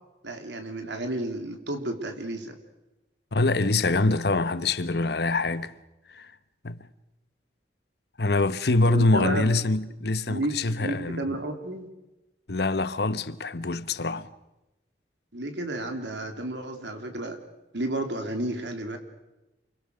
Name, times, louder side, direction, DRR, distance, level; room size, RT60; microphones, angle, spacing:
voice 1, 0.2-2.6 8.8-9.5 10.3-11.9 15.3-17.4 17.7-19.0, right 1 dB, 75° right, 3.1 m, -32 dB
voice 2, 3.3-5.7 6.1-6.3 6.6-6.8 8.2-11.2 12.5-14.3, left 2 dB, 60° left, 1.0 m, -25 dB
29.0 x 22.0 x 6.7 m
head